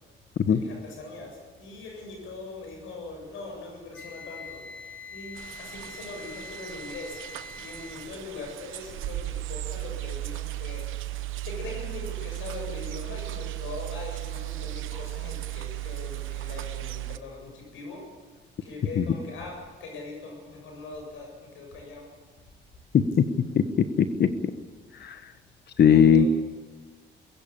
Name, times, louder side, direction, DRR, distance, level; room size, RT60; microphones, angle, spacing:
voice 1, 0.5-7.2 7.6-18.1 18.6-22.1 25.8-26.3, left 3 dB, 80° left, 1 dB, 7.8 m, -41 dB
Wind instrument woodwind instrument, 3.9-8.1, left 3 dB, 5° left, 5.7 m, -43 dB
sound 1, 5.4-17.2, right 17 dB, 85° right, 1.0 m, -36 dB
voice 2, 22.9-23.2 23.5-23.6 24.0-24.5 25.0-25.3 25.8-26.3, left 7 dB, 55° left, 11 dB, 1.2 m, -19 dB
22.0 x 16.0 x 8.7 m, 1.4 s
cardioid pair, 90°, 20 cm